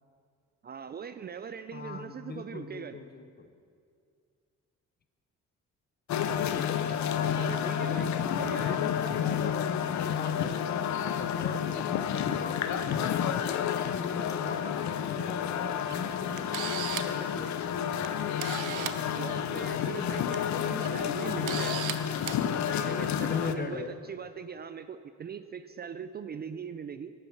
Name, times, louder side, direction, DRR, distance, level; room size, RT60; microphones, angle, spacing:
voice 1, 0.6-3.0 7.4-8.8 18.6-21.8 22.2-27.1, right 7 dB, 35° right, 11 dB, 0.4 m, -41 dB
voice 2, 1.7-3.5 7.1-7.3 8.7-13.4 13.7-17.8 23.2-24.0, left 5 dB, 30° left, 10 dB, 0.7 m, -39 dB
sound 1, 6.1-23.5, left 9 dB, 65° left, 0.6 m, -30 dB
Camera, 15.9-16.0 16.4-17.2 18.0-18.1 18.4-19.0 20.1-20.4 20.8-20.9 21.5-21.9 22.3-22.4, right 12 dB, 85° right, 0.6 m, -35 dB
9.8 x 8.5 x 5.9 m, 2.3 s
cardioid pair, 90°, 30 cm